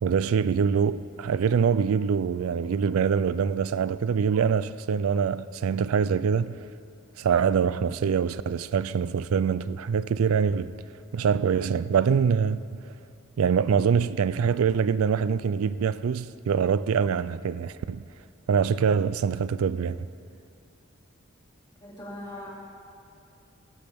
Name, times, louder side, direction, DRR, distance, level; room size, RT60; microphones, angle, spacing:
voice 1, 0.0-6.6 7.2-10.7 11.1-12.8 13.4-18.0 18.5-20.1, right 6 dB, 90° right, 0.4 m, -24 dB
voice 2, 21.8-22.5, left 1 dB, 20° left, 2.5 m, -40 dB
19.5 x 12.5 x 3.5 m
head